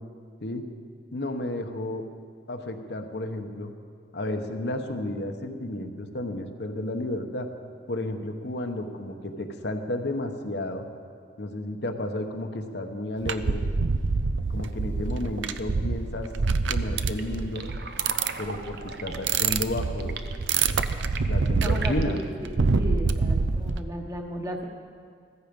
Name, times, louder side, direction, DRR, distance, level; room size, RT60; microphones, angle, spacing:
voice 1, 1.1-2.0 2.5-3.7 4.1-7.5 7.9-10.9 11.4-13.6 14.5-16.3 16.7-17.7 18.4-20.2 21.3-22.2, left 1 dB, 60° left, 5 dB, 1.0 m, -32 dB
sound 1, 13.2-23.8, right 4 dB, 90° right, 0.6 m, -26 dB
sound 2, 16.9-22.3, right 4 dB, 60° right, 0.8 m, -40 dB
voice 2, 21.6-24.7, equal, 15° right, 2 dB, 1.2 m, -35 dB
15.0 x 14.5 x 5.3 m, 2.1 s
head